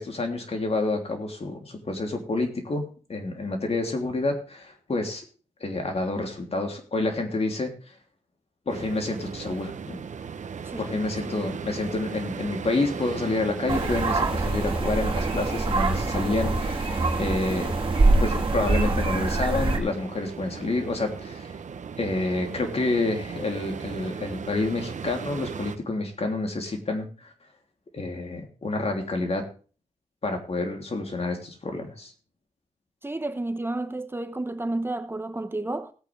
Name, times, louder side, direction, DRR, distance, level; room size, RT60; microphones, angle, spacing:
voice 1, 0.0-2.8 3.1-5.2 5.6-7.7 8.7-10.0 10.8-17.8 18.2-21.5 22.0-27.3 27.9-29.4 30.2-32.1, left 2 dB, 55° left, 3.1 m, -28 dB
sound 1, 8.7-25.8, right 6 dB, 75° right, 1.0 m, -37 dB
voice 2, 10.6-11.3 33.0-35.9, right 2 dB, 20° right, 1.0 m, -31 dB
sound 2, 13.7-19.8, right 3 dB, 40° right, 2.8 m, -24 dB
18.0 x 8.8 x 3.4 m
wide cardioid pair, 75°, 13 cm